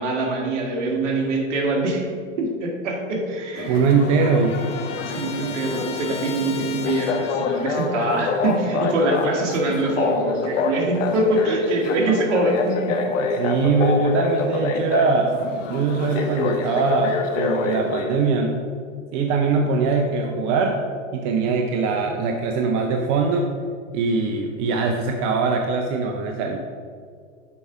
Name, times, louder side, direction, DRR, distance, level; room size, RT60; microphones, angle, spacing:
voice 1, 0.0-2.1 2.4-3.8 4.2-4.3 5.1-13.1, right 2 dB, 70° right, 1 dB, 1.7 m, -24 dB
Trumpet, 3.3-7.8, left 6 dB, 15° left, 0.4 m, -37 dB
sound 1, 3.6-18.1, left 4 dB, 75° left, 1.0 m, -26 dB
voice 2, 3.7-4.6 13.2-15.3 15.7-18.6 19.1-20.8 21.1-23.5 23.9-26.6, right 4 dB, 45° right, 3 dB, 0.7 m, -22 dB
7.0 x 4.8 x 4.6 m, 2.1 s
hypercardioid pair, 105°, 38 cm